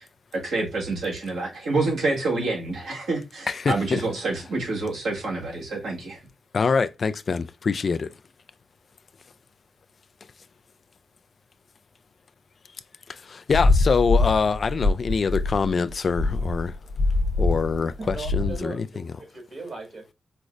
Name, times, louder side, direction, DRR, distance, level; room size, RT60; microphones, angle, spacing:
voice 1, 0.3-6.2, right 3 dB, 80° right, 1.4 m, -27 dB
voice 2, 3.5-4.0 6.5-8.1 13.3-16.7 17.4-19.0, left 5 dB, 60° left, 0.3 m, -24 dB
sound 1, 13.5-18.6, left 2 dB, 75° left, 0.7 m, -23 dB
voice 3, 18.0-20.1, right 3 dB, 60° right, 1.6 m, -38 dB
5.0 x 2.0 x 2.4 m
supercardioid pair, 45°, 0 cm